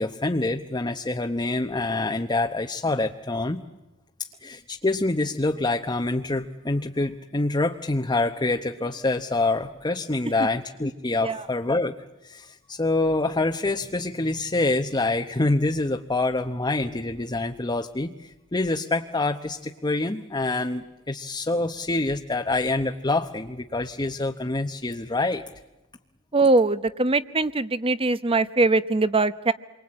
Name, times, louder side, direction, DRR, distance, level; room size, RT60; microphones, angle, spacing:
voice 1, 0.0-3.6 4.4-12.0 12.2-25.4, left 2 dB, 20° left, 5 dB, 0.9 m, -26 dB
voice 2, 26.3-29.5, right 3 dB, 25° right, 14 dB, 0.9 m, -22 dB
28.0 x 24.0 x 8.7 m, 1.0 s
head